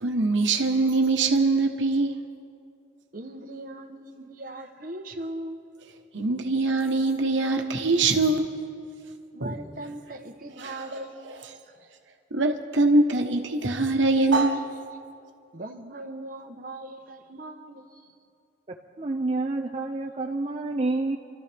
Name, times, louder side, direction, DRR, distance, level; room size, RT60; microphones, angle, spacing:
voice 1, 0.0-2.2 6.1-8.5 9.4-9.5 10.6-10.8 11.3-11.4 12.3-14.7, right 3 dB, 75° right, 3 dB, 1.2 m, -23 dB
voice 2, 3.1-5.6 9.3-11.5 15.5-18.1, right 1 dB, 45° right, 5 dB, 1.0 m, -39 dB
voice 3, 19.0-21.2, right 2 dB, 30° right, 2 dB, 0.5 m, -28 dB
27.0 x 13.0 x 3.5 m, 2.4 s
head